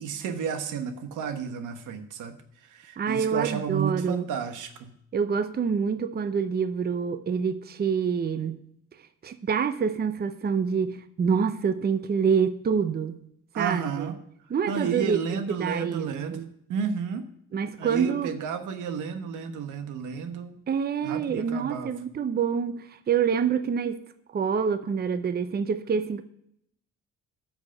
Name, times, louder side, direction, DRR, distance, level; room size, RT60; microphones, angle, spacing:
voice 1, 0.0-2.4 2.7-4.9 13.5-14.1 14.7-16.4 16.7-17.2 17.8-20.6 21.0-21.9, right 6 dB, 85° right, 9 dB, 1.1 m, -32 dB
voice 2, 3.0-4.3 5.1-8.6 9.2-13.2 13.6-14.1 14.5-16.5 17.5-18.3 20.7-24.0 24.3-26.2, right 6 dB, 30° right, 12 dB, 0.6 m, -26 dB
8.4 x 6.5 x 6.5 m, 0.72 s
cardioid pair, 90°, 30 cm